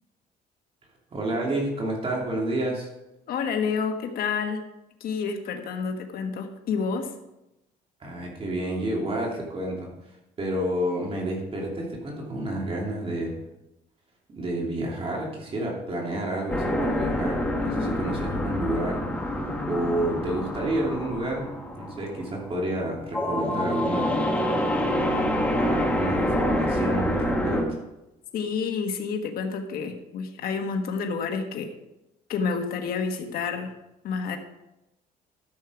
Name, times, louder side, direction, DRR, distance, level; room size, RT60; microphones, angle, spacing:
voice 1, 1.1-2.9 8.0-9.9 10.4-13.4 14.3-19.0 19.6-21.5 21.7-24.2 25.6-27.8, right 1 dB, 35° right, -2 dB, 2.8 m, -29 dB
voice 2, 3.3-4.7 5.0-7.1 28.3-31.7 32.3-33.7 34.0-34.4, left 5 dB, 60° left, 5 dB, 1.4 m, -29 dB
sound 1, 16.5-27.6, left 1 dB, 10° left, 1.9 m, -27 dB
13.0 x 6.5 x 4.9 m, 0.92 s
cardioid pair, 110°, 17 cm